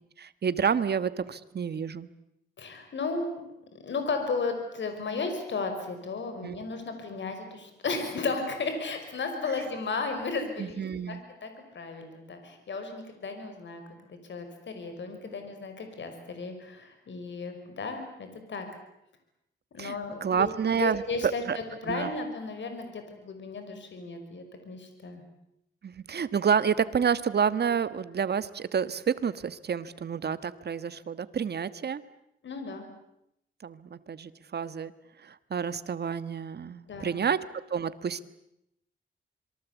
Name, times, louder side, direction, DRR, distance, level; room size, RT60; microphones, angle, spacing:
voice 1, 0.2-2.1 6.4-6.6 10.6-11.2 19.8-20.0 20.2-21.0 21.5-21.6 21.9-22.1 25.8-32.0 33.6-34.9 35.2-37.4 37.7-38.3, right 7 dB, 55° right, 14 dB, 1.4 m, -29 dB
voice 2, 2.6-3.4 3.7-13.8 14.1-18.7 19.7-20.5 20.7-25.2 32.4-32.9 36.9-37.1, left 4 dB, 70° left, 6 dB, 5.4 m, -34 dB
26.5 x 23.0 x 8.3 m, 0.81 s
wide cardioid pair, 105°, 20 cm